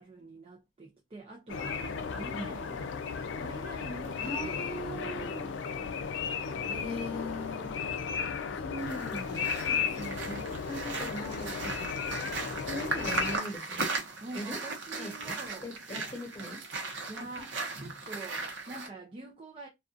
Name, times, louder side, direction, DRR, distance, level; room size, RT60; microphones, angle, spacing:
voice 1, 0.0-2.8 3.4-5.4 9.6-10.7 14.2-15.7 17.1-19.7, right 2 dB, 30° right, 0.5 m, -46 dB
sound 1, 1.5-13.4, left 6 dB, 80° left, 0.4 m, -35 dB
voice 2, 4.2-5.5 6.7-7.8 8.6-9.7 10.3-11.9 12.6-13.9 14.3-14.6 15.0-15.4 15.6-16.6 17.2-17.5, equal, 20° left, 1.1 m, -40 dB
sound 2, 8.8-18.9, right 3 dB, 70° right, 0.8 m, -37 dB
2.5 x 2.3 x 2.3 m
head